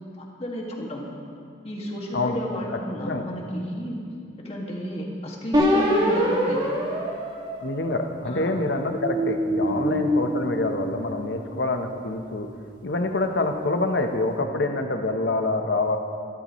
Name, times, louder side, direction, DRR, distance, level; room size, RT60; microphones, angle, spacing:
voice 1, 0.2-1.1 1.6-4.0 4.4-6.7 8.2-8.5 9.6-9.9, equal, 30° left, -2 dB, 2.0 m, -32 dB
sound 1, 5.5-8.2 8.8-11.3, equal, 25° right, 2.2 m, -25 dB
voice 2, 7.6-12.5 12.8-16.0, left 2 dB, 60° left, 5 dB, 1.0 m, -26 dB
24.5 x 12.5 x 3.1 m, 2.5 s
head